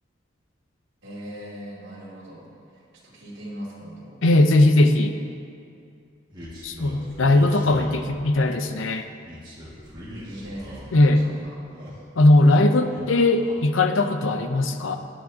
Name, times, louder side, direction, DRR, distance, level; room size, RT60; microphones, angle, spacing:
voice 1, 1.0-2.5 2.7-4.1 10.1-11.6, equal, 60° right, -9 dB, 2.6 m, -40 dB
voice 2, 4.2-5.1 6.6-9.1 10.9-11.2 12.2-15.0, left 2 dB, 85° left, 7 dB, 0.7 m, -19 dB
sound 1, 6.3-8.5 9.2-11.2 11.5-12.5 12.8-13.6, equal, 25° right, 1.9 m, -41 dB
16.5 x 9.9 x 2.8 m, 2.4 s
head